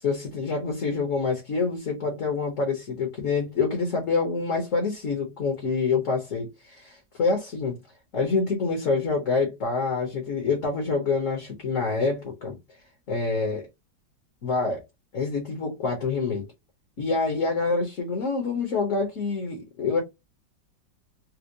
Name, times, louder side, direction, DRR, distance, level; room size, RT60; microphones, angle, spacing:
voice 1, 0.0-7.8 8.1-12.6 13.1-13.7 14.4-14.8 15.1-16.4 17.0-20.0, left 4 dB, 50° left, 1.1 m, -26 dB
4.4 x 2.0 x 2.5 m
omnidirectional pair, 2.0 m